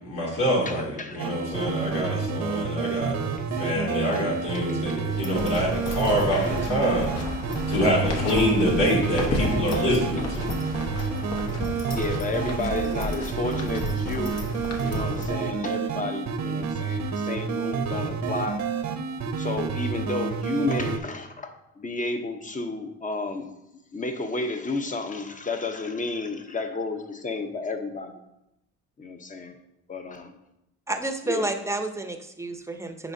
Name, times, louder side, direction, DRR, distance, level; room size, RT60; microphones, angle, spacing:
voice 1, 0.0-3.2 3.5-7.1 7.7-10.4, equal, 80° left, -4 dB, 2.6 m, -25 dB
voice 2, 0.7-1.2 10.2-10.3 11.9-14.4 14.8-18.6 19.4-23.5 23.9-28.1 29.0-29.6 29.9-30.3 31.3-31.5, left 3 dB, 25° left, 7 dB, 0.8 m, -31 dB
sound 1, 1.2-21.0, right 5 dB, 65° right, 0.7 m, -29 dB
sound 2, 5.1-15.3, left 2 dB, 60° left, 1.2 m, -32 dB
voice 3, 30.9-33.1, right 2 dB, 10° right, 6 dB, 0.7 m, -30 dB
9.6 x 5.0 x 2.7 m, 0.88 s
cardioid pair, 90°, 30 cm